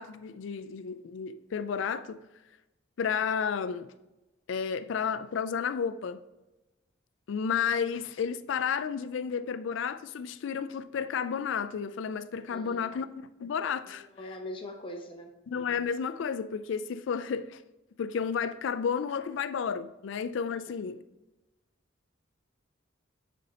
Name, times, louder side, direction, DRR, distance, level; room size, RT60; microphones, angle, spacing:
voice 1, 0.0-2.2 3.0-3.9 4.5-6.2 7.3-14.1 15.5-17.6 18.0-21.0, left 6 dB, 65° left, 0.3 m, -32 dB
voice 2, 12.5-12.9 13.9-15.3, left 1 dB, 25° left, 0.7 m, -41 dB
9.0 x 4.3 x 2.8 m
head